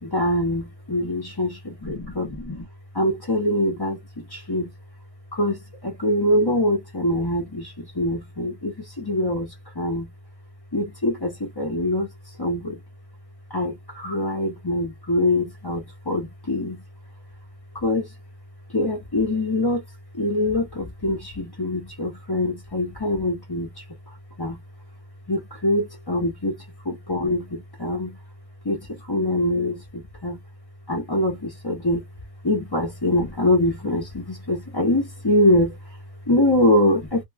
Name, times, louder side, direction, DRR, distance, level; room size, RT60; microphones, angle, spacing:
voice 1, 0.0-2.7 2.9-4.7 5.3-10.1 10.7-12.8 13.5-16.8 17.7-18.1 18.7-19.8 20.1-24.6 25.3-28.2 28.6-30.4 30.9-32.1 32.4-37.2, left 1 dB, 35° left, 0.4 m, -24 dB
2.9 x 2.2 x 2.3 m
omnidirectional pair, 1.5 m